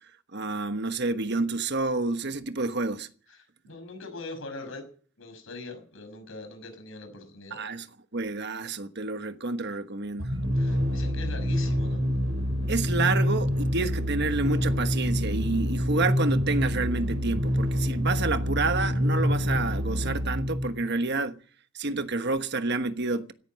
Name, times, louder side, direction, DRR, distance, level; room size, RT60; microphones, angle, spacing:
voice 1, 0.3-3.1 7.5-7.9 8.1-10.3 12.7-21.4 21.7-23.3, right 3 dB, 50° right, 1.2 m, -29 dB
voice 2, 3.6-4.8 5.2-7.6 10.6-12.0, left 2 dB, 65° left, 5.8 m, -41 dB
sound 1, 10.2-20.9, equal, 85° right, 6.4 m, -27 dB
17.0 x 10.5 x 7.5 m
head